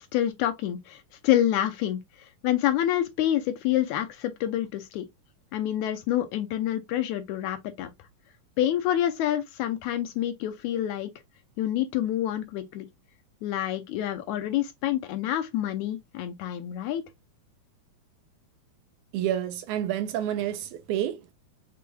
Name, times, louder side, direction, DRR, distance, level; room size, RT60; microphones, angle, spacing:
voice 1, 0.0-5.1 5.5-7.9 8.6-11.1 11.6-12.9 13.4-17.0, left 12 dB, 80° left, 1.9 m, -27 dB
voice 2, 19.1-21.3, right 11 dB, 75° right, 2.0 m, -29 dB
6.2 x 3.7 x 2.2 m
omnidirectional pair, 3.7 m